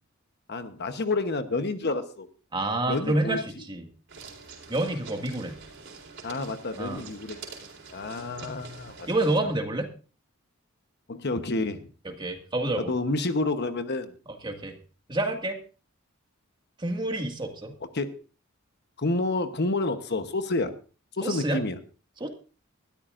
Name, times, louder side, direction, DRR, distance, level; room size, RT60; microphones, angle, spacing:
voice 1, 0.5-2.3 2.9-3.4 6.2-7.4 7.9-9.1 11.1-11.9 12.8-14.1 17.9-18.1 19.0-20.8 21.2-21.8, left 2 dB, 55° left, 9 dB, 1.0 m, -29 dB
voice 2, 2.5-3.9 4.7-5.6 6.8-7.0 8.4-8.5 9.1-9.9 12.1-12.9 14.4-14.7 15.1-15.6 16.8-17.7 21.2-21.6 22.2-22.3, right 1 dB, 25° right, 4 dB, 2.0 m, -28 dB
sound 1, 4.1-9.4, right 4 dB, 60° right, 3.9 m, -45 dB
20.0 x 13.0 x 2.6 m, 0.36 s
head